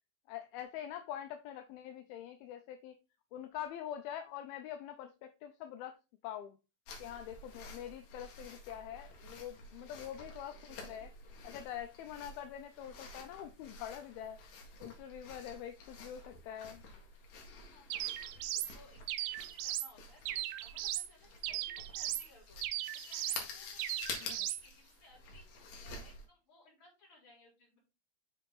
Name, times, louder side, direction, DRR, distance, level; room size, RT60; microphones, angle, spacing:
voice 1, 0.3-3.0 3.3-6.0 6.2-6.6 7.0-11.1 11.4-16.8 24.2-24.5, left 10 dB, 80° left, 2.4 m, -45 dB
sound 1, 6.9-26.3, left 3 dB, 65° left, 3.2 m, -50 dB
voice 2, 17.5-18.1 18.3-19.3 19.6-22.6 22.9-23.9 24.3-27.8, left 2 dB, 30° left, 4.4 m, -62 dB
sound 2, 17.9-18.7 19.1-19.9 20.3-21.1 21.4-22.3 22.6-23.5 23.8-24.6, right 14 dB, 85° right, 2.4 m, -37 dB
7.7 x 4.7 x 3.8 m
omnidirectional pair, 4.4 m